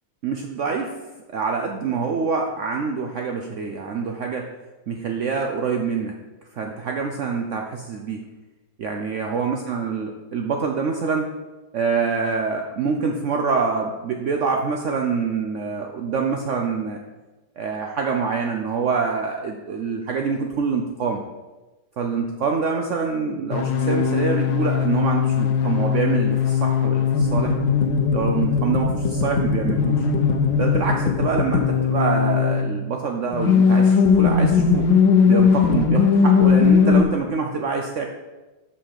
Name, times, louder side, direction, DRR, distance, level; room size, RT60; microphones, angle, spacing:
voice 1, 0.2-0.9 1.3-4.5 4.9-6.1 6.6-8.2 8.8-11.3 11.7-17.0 17.6-21.2 22.0-27.5 28.1-30.0 30.5-34.9 35.3-38.1, right 5 dB, 80° right, 2 dB, 0.6 m, -25 dB
sound 1, 23.5-32.7 33.3-37.0, left 6 dB, 70° left, 1.4 m, -19 dB
5.7 x 5.5 x 6.5 m, 1.1 s
omnidirectional pair, 2.1 m